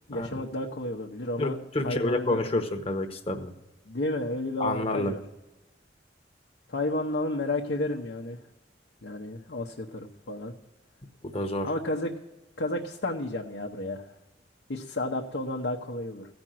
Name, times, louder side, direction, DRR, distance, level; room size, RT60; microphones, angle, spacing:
voice 1, 0.1-1.6 1.8-2.4 3.9-5.2 6.7-8.4 9.0-10.6 11.6-12.1 12.6-14.1 14.7-16.3, left 1 dB, 90° left, -1 dB, 0.9 m, -32 dB
voice 2, 1.4-3.5 4.6-5.2 11.2-11.7, left 2 dB, 35° left, 6 dB, 0.9 m, -29 dB
15.5 x 5.2 x 7.6 m, 1.0 s
head